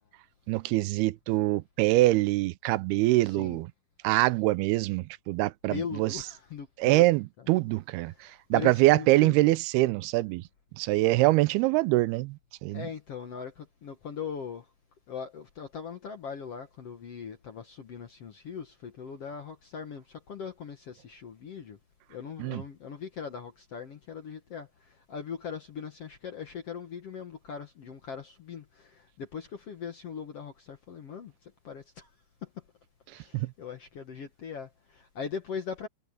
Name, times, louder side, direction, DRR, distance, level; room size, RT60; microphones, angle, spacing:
voice 1, 0.5-3.7 4.0-6.2 6.8-10.4 10.8-12.9 22.4-22.6 33.3-33.5, right 18 dB, 85° right, 2.6 m, -24 dB
voice 2, 3.2-3.6 5.7-7.0 8.1-9.4 12.7-14.7 15.1-21.8 22.1-32.1 32.4-32.5 33.1-35.9, left 6 dB, 55° left, 1.7 m, -40 dB
omnidirectional pair, 4.5 m